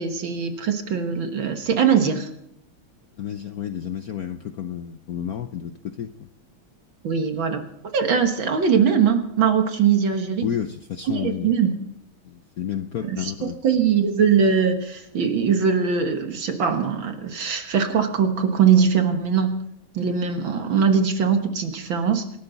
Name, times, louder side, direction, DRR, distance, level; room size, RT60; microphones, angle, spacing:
voice 1, 0.0-2.3 7.0-7.6 7.9-10.5 11.1-11.7 13.0-19.5 19.9-22.3, right 6 dB, 65° right, 5 dB, 2.1 m, -21 dB
voice 2, 3.2-6.3 10.4-11.5 12.2-13.6, left 9 dB, 70° left, 9 dB, 0.8 m, -31 dB
27.5 x 12.5 x 4.0 m, 0.77 s
omnidirectional pair, 2.4 m